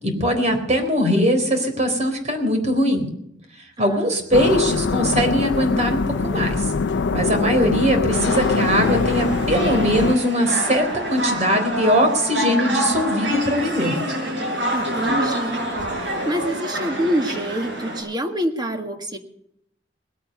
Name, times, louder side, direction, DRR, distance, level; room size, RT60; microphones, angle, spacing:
voice 1, 0.0-3.1 3.8-6.7 7.1-10.8 11.1-13.9, equal, 40° right, 4 dB, 3.7 m, -21 dB
voice 2, 3.8-4.2 14.7-15.6 16.2-19.2, equal, 25° right, 5 dB, 1.7 m, -26 dB
sound 1, 4.3-10.1, left 4 dB, 85° left, 0.5 m, -23 dB
sound 2, 8.1-18.0, equal, 80° right, 7.1 m, -26 dB
20.5 x 8.8 x 6.8 m, 0.75 s
head